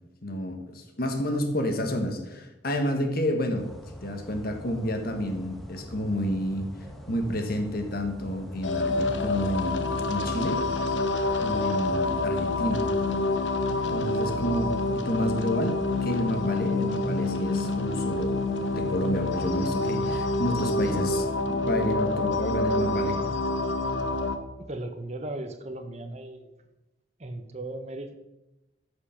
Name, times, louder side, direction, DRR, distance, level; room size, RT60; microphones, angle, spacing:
voice 1, 0.2-3.7 4.0-6.7 7.1-10.7 11.4-12.9 13.9-18.4 18.7-23.2, left 1 dB, 50° left, 5 dB, 1.4 m, -30 dB
sound 1, 3.6-21.4, equal, ahead, 1.1 m, -44 dB
sound 2, 8.6-24.4, left 2 dB, 75° left, 1.0 m, -27 dB
voice 2, 24.6-26.5 27.2-28.1, right 1 dB, 35° right, 6 dB, 0.9 m, -37 dB
13.5 x 5.2 x 5.8 m, 1.0 s
head